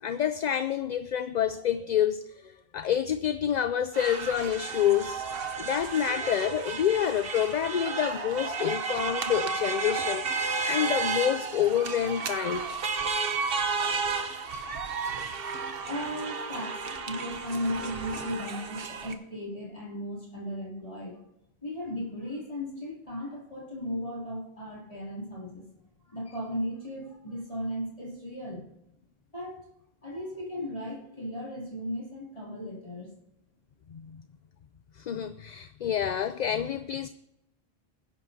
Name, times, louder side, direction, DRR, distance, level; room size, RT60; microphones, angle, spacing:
voice 1, 0.0-5.3 5.6-12.6 33.9-34.2 35.0-37.1, left 9 dB, 55° left, 0.5 m, -28 dB
sound 1, 3.9-19.1, right 4 dB, 65° right, 1.1 m, -32 dB
voice 2, 15.4-21.2 21.6-25.6 26.0-28.7 29.3-29.7 30.0-33.1, equal, 35° left, 3.1 m, -36 dB
20.5 x 10.5 x 2.8 m
omnidirectional pair, 1.1 m